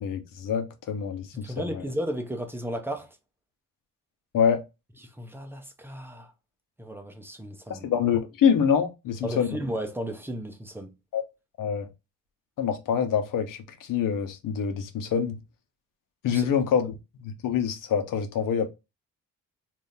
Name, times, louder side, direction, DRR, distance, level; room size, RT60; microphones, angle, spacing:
voice 1, 0.0-1.8 4.3-4.6 7.7-9.5 11.1-11.2 11.6-11.9 12.6-15.4 16.2-16.9 17.2-18.7, left 7 dB, 75° left, 0.9 m, -26 dB
voice 2, 1.3-3.2 5.0-6.3 6.8-7.9 9.2-11.0 16.3-16.5, equal, 5° right, 0.7 m, -34 dB
3.6 x 2.6 x 2.7 m
cardioid pair, 120°, 32 cm